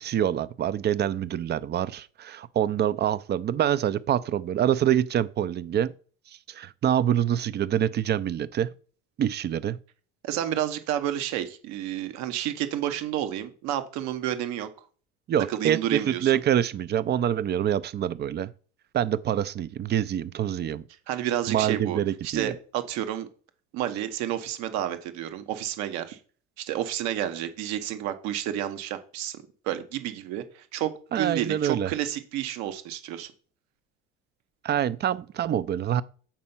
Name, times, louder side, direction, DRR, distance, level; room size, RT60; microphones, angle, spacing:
voice 1, 0.0-5.9 6.5-8.7 9.2-9.8 15.3-18.5 18.9-20.8 21.5-22.5 31.1-31.9 34.6-36.0, right 10 dB, 35° right, 0.5 m, -26 dB
voice 2, 10.2-14.7 15.5-16.3 21.1-23.3 23.7-26.2 26.6-33.3, right 11 dB, 70° right, 1.1 m, -30 dB
7.4 x 4.3 x 5.6 m
supercardioid pair, 85°, 29 cm